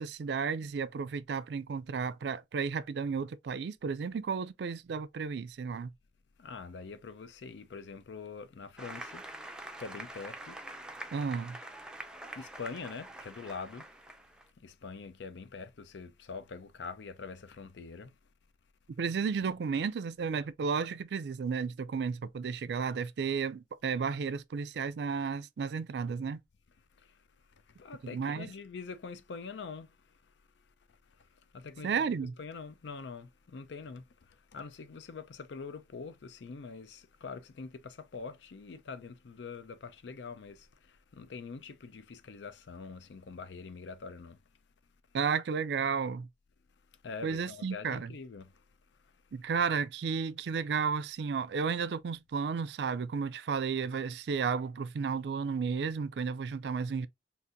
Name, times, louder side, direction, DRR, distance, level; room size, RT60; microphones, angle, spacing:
voice 1, 0.0-5.9 11.1-11.6 19.0-26.4 28.1-28.5 31.8-32.3 45.1-46.3 47.2-48.1 49.3-57.1, right 5 dB, 70° right, 0.4 m, -33 dB
voice 2, 6.4-9.2 9.8-10.6 12.4-13.9 14.6-18.1 19.4-19.5 27.8-29.9 31.5-32.1 32.4-44.4 47.0-48.5, left 4 dB, 80° left, 0.5 m, -44 dB
Applause, 8.8-14.4, right 1 dB, 5° right, 0.4 m, -45 dB
4.0 x 2.5 x 2.5 m
head